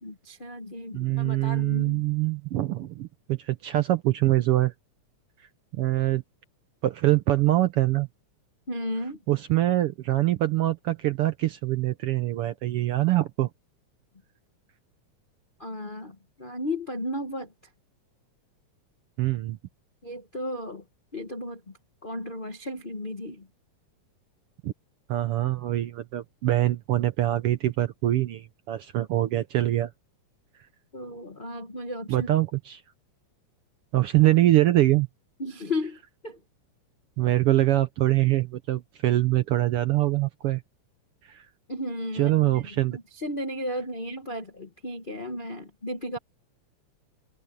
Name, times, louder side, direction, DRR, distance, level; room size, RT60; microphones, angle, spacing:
voice 1, 0.0-2.0 8.7-9.2 15.6-17.5 20.0-20.8 21.1-21.7 22.0-23.5 30.9-32.3 35.4-36.4 41.7-46.2, left 1 dB, 85° left, 0.4 m, -34 dB
voice 2, 0.9-4.7 5.7-6.2 6.8-8.1 9.3-13.5 19.2-19.6 24.6-24.7 25.1-29.9 32.1-32.8 33.9-35.1 37.2-40.6 41.3-41.4 42.1-43.0, right 15 dB, 70° right, 1.4 m, -24 dB
omnidirectional pair, 3.4 m